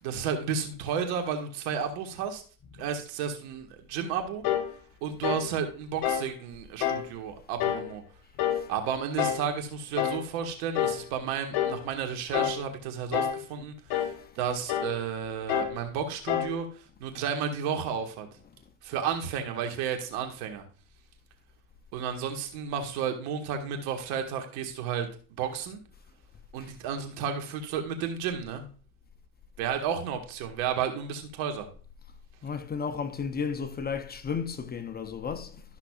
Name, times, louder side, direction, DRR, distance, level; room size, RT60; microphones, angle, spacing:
voice 1, 0.0-2.4 2.8-4.4 5.0-8.0 8.7-18.3 18.8-20.6 21.9-25.8 26.5-28.6 29.6-31.7, right 7 dB, 85° right, 1.7 m, -32 dB
sound 1, 4.4-4.7 5.2-5.5 6.0-6.3 6.8-7.1 7.6-7.9 8.4-8.7 9.2-9.5 10.0-10.3 10.8-11.1 11.5-11.8 12.3-12.7 13.1-13.5 13.9-14.2 14.7-15.0 15.5-15.8 16.3-16.6, left 10 dB, 65° left, 1.0 m, -28 dB
voice 2, 32.4-35.6, left 6 dB, 25° left, 0.5 m, -33 dB
13.0 x 5.9 x 2.4 m
cardioid pair, 125°, 42 cm